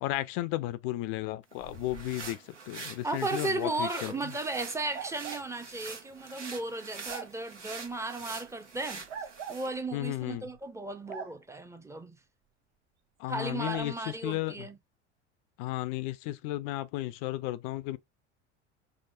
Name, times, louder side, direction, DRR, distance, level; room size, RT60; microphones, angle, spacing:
voice 1, 0.0-4.3 9.9-10.5 13.2-14.7 15.6-18.0, left 16 dB, 45° left, 0.4 m, -34 dB
sound 1, 1.5-9.7, right 4 dB, 75° right, 1.2 m, -45 dB
voice 2, 3.0-12.2 13.3-14.8, right 2 dB, 10° right, 0.6 m, -35 dB
sound 2, 4.9-5.5 7.1-7.3 9.1-9.6 11.1-11.3 13.6-13.9, right 7 dB, 45° right, 1.0 m, -40 dB
4.8 x 2.0 x 2.3 m
figure-of-eight pair, 70°, 36 cm